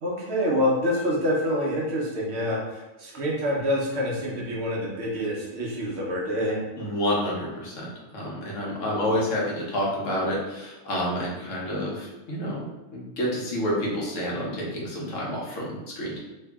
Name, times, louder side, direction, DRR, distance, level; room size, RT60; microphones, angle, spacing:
voice 1, 0.0-6.6 8.6-9.1, equal, 65° right, -2 dB, 1.0 m, -27 dB
voice 2, 6.8-16.2, equal, 90° left, -4 dB, 1.3 m, -29 dB
3.1 x 2.8 x 3.4 m, 1.1 s
omnidirectional pair, 1.3 m